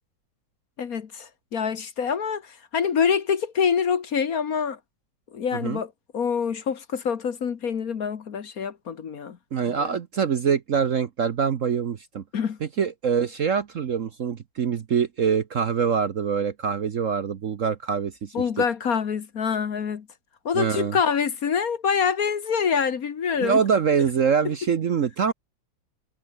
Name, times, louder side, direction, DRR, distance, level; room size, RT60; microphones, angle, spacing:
voice 1, 0.8-4.8 5.3-9.4 9.7-9.9 12.3-12.6 18.3-20.1 20.4-23.6 24.4-24.5, left 6 dB, 50° left, 1.6 m, -26 dB
voice 2, 9.5-12.2 12.8-18.3 20.5-21.0 23.4-25.3, right 6 dB, 50° right, 1.1 m, -24 dB
omnidirectional pair, 2.1 m